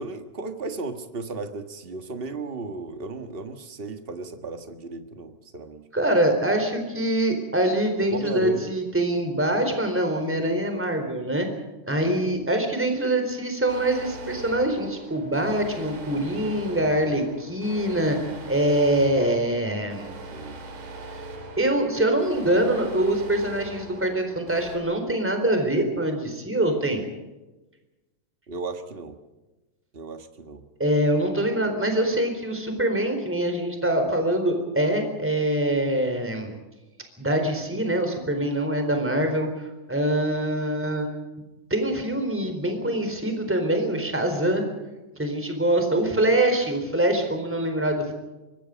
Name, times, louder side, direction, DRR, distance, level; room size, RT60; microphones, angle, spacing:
voice 1, 0.0-5.8 8.1-8.7 12.0-12.4 20.3-20.6 28.5-29.2 29.9-30.6, right 3 dB, 40° right, 7 dB, 0.8 m, -35 dB
voice 2, 5.9-11.5 11.9-18.2 18.5-20.1 21.1-21.2 21.6-27.1 30.8-36.5 37.2-41.1 41.7-44.6 45.2-48.1, right 1 dB, 5° right, 5 dB, 3.8 m, -24 dB
sound 1, 13.7-24.8, right 2 dB, 75° right, 4.4 m, -41 dB
25.0 x 22.5 x 5.2 m, 1.1 s
omnidirectional pair, 3.6 m